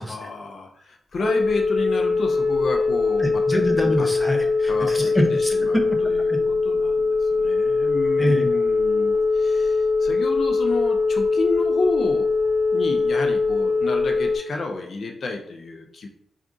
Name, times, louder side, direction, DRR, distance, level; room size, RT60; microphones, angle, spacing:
voice 1, 0.1-3.4 4.0-4.1 4.6-12.3 12.7-16.1, left 3 dB, 60° left, 3 dB, 0.4 m, -31 dB
Telephone, 1.1-14.4, left 3 dB, 35° left, 0.9 m, -21 dB
voice 2, 3.2-6.0 6.3-6.4 8.2-8.5, equal, 5° left, 2 dB, 0.7 m, -25 dB
4.6 x 2.4 x 2.6 m, 0.70 s
cardioid pair, 75°, 0 cm